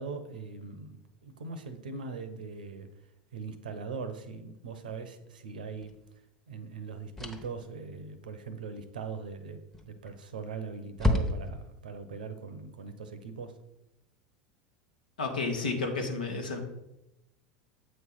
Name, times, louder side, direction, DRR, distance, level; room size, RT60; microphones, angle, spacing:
voice 1, 0.0-2.9 3.3-5.9 6.5-13.6, right 5 dB, 85° right, 10 dB, 0.7 m, -41 dB
sound 1, 5.8-6.0 7.1-7.6 9.7-10.2 10.5-10.6 11.0-11.8, left 1 dB, 5° left, 1.0 m, -29 dB
voice 2, 15.2-16.6, left 3 dB, 90° left, 2 dB, 1.3 m, -31 dB
7.8 x 3.2 x 5.5 m, 0.93 s
hypercardioid pair, 90°, 4 cm